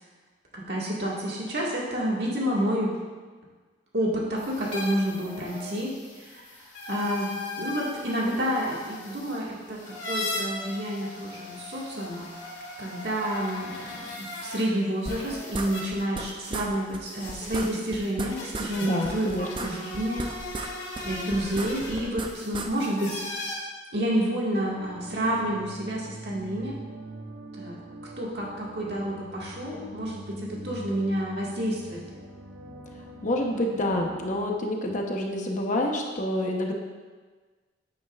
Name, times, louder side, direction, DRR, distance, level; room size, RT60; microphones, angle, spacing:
voice 1, 0.5-2.9 3.9-6.5 6.9-7.3 7.6-12.3 12.8-20.2 21.0-23.2 23.9-26.8 27.6-27.8 28.2-32.0, equal, 60° right, -4 dB, 2.0 m, -29 dB
sound 1, 4.3-14.6 15.0-23.5, left 2 dB, 65° left, 2.7 m, -39 dB
sound 2, 15.1-16.3 16.5-16.7 16.9-17.0 17.3-18.7 19.0-20.7 21.0-22.7, right 2 dB, 25° right, 0.5 m, -35 dB
voice 2, 18.8-19.5 33.2-36.7, left 1 dB, 45° left, 1 dB, 1.0 m, -28 dB
sound 3, 24.6-34.4, right 1 dB, 85° right, 0.9 m, -43 dB
9.1 x 9.0 x 2.5 m, 1.4 s
head